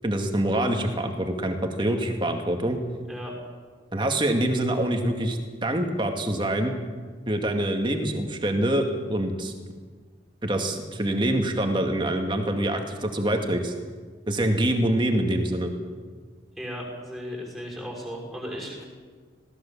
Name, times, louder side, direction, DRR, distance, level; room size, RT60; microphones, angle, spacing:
voice 1, 0.0-2.8 3.9-6.8 7.3-9.5 10.4-13.7 14.3-15.7, right 1 dB, 25° right, 4 dB, 2.1 m, -25 dB
voice 2, 16.6-18.8, equal, ahead, -2 dB, 5.9 m, -36 dB
21.0 x 17.5 x 7.3 m, 1.5 s
head